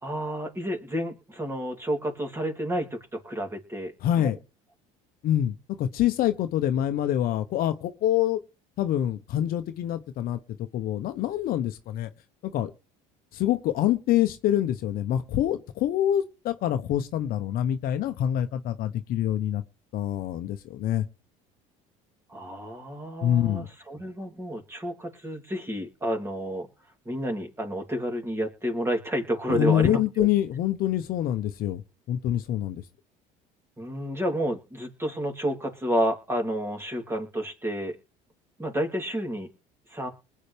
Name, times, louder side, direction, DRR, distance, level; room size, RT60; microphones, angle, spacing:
voice 1, 0.0-3.9 4.2-4.3 22.3-26.7 27.0-30.3 33.8-38.0 38.6-39.5 39.9-40.1, equal, 15° right, 3.2 m, -30 dB
voice 2, 4.0-4.4 5.2-8.4 8.8-10.4 10.7-12.1 12.4-12.7 13.3-19.6 19.9-21.0 23.2-23.7 29.5-31.8 32.1-32.8, left 11 dB, 60° left, 1.1 m, -26 dB
20.5 x 8.6 x 3.5 m
supercardioid pair, 95°, 17 cm